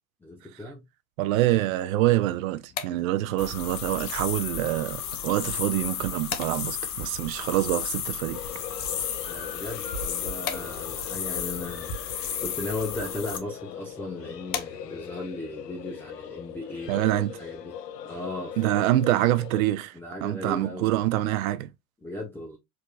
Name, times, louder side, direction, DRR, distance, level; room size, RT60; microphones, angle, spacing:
voice 1, 0.2-0.8 9.2-12.0 12.4-17.7 18.0-18.9 19.9-21.1 22.0-22.6, left 2 dB, 5° left, 0.7 m, -37 dB
voice 2, 1.2-8.4 16.9-17.4 18.6-19.9 20.2-21.7, right 15 dB, 60° right, 0.6 m, -25 dB
sound 1, 2.4-15.3, left 9 dB, 25° left, 0.3 m, -43 dB
sound 2, 3.4-13.4, left 7 dB, 65° left, 1.0 m, -34 dB
sound 3, 8.3-19.6, left 8 dB, 90° left, 0.6 m, -40 dB
4.6 x 2.9 x 2.3 m
hypercardioid pair, 90°, 48 cm